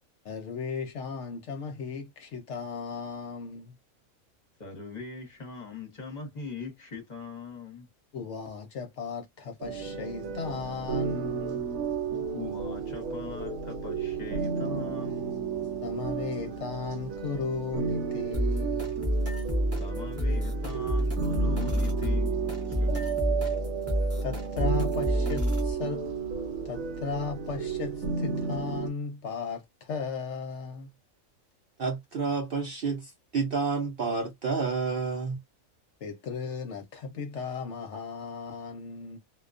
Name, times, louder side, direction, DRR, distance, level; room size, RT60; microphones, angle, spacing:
voice 1, 0.2-3.7 8.1-11.6 15.8-19.0 23.4-23.5 24.2-26.1 26.6-30.9 36.0-39.2, left 5 dB, 65° left, 0.8 m, -36 dB
voice 2, 4.6-7.9 12.3-15.4 19.8-23.3, left 4 dB, 35° left, 0.9 m, -41 dB
sound 1, 9.6-28.9, right 6 dB, 75° right, 1.1 m, -33 dB
sound 2, 18.3-25.7, equal, 15° right, 0.6 m, -29 dB
voice 3, 31.8-35.4, right 4 dB, 55° right, 0.6 m, -29 dB
2.3 x 2.2 x 2.4 m
omnidirectional pair, 1.5 m